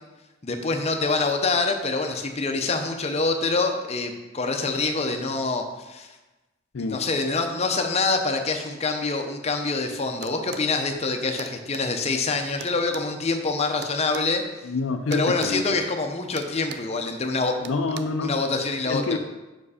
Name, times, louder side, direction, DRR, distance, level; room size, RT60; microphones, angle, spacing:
voice 1, 0.4-6.1 6.8-14.4 15.1-17.6 18.2-19.2, left 3 dB, 30° left, 4 dB, 0.6 m, -25 dB
sound 1, 10.2-10.7 11.4-11.9 12.6-14.3 15.1-15.6 15.8-16.0 16.4-16.9 17.6-18.0, right 7 dB, 55° right, 0.4 m, -39 dB
voice 2, 14.6-15.7 17.6-18.4 18.9-19.2, left 3 dB, 70° left, 7 dB, 0.5 m, -27 dB
6.3 x 4.8 x 4.9 m, 1.1 s
head